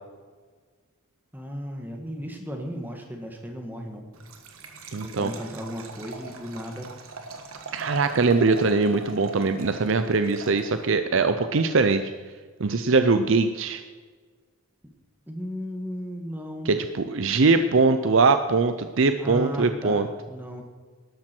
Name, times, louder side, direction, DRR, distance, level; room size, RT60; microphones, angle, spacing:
voice 1, 1.3-4.1 5.0-6.9 15.3-16.7 19.2-20.6, equal, 10° right, 3 dB, 1.6 m, -35 dB
Liquid, 4.1-11.0, right 3 dB, 80° right, 1.5 m, -41 dB
voice 2, 4.9-5.3 7.7-12.1 12.6-13.8 16.7-20.1, right 4 dB, 60° right, 9 dB, 0.6 m, -22 dB
12.5 x 12.0 x 4.5 m, 1.5 s
head